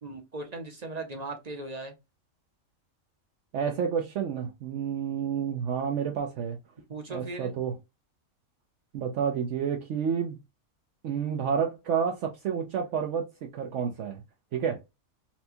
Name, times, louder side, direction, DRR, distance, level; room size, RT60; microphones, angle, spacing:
voice 1, 0.0-1.9 6.9-7.5, right 2 dB, 40° right, 0.7 m, -38 dB
voice 2, 3.5-6.6 7.1-7.8 8.9-10.4 11.0-14.2 14.5-14.8, right 7 dB, 70° right, 0.9 m, -30 dB
4.2 x 2.2 x 2.7 m
omnidirectional pair, 1.4 m